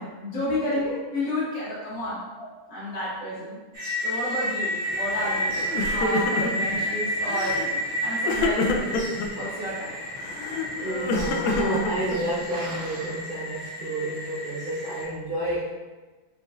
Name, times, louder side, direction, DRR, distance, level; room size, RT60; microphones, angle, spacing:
voice 1, 0.0-2.3 2.7-3.6 4.0-7.6 8.0-9.9, left 1 dB, 65° left, -8 dB, 1.8 m, -31 dB
sound 1, 3.7-15.0, equal, 35° right, 1.4 m, -31 dB
sound 2, 4.8-13.2, right 1 dB, 90° right, 1.6 m, -44 dB
Crying sobbing, 5.1-5.4 5.7-6.7 7.2-7.7 8.3-9.3 10.2-12.4, left 3 dB, 90° left, 1.4 m, -28 dB
voice 2, 10.7-15.7, right 1 dB, 65° right, -10 dB, 0.5 m, -30 dB
4.4 x 4.2 x 2.3 m, 1.3 s
omnidirectional pair, 2.1 m